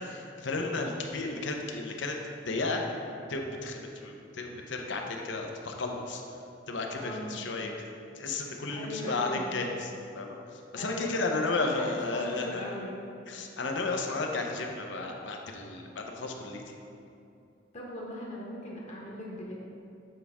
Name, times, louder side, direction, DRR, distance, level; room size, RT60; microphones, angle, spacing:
voice 1, 0.0-2.2 2.4-2.8 3.3-6.2 6.7-7.9 8.2-12.8 13.3-16.7, left 3 dB, 75° left, 2 dB, 0.7 m, -33 dB
voice 2, 6.9-7.4 8.7-9.5 10.7-13.0 17.7-19.5, left 1 dB, 40° left, -4 dB, 1.0 m, -39 dB
7.5 x 4.7 x 3.5 m, 2.6 s
head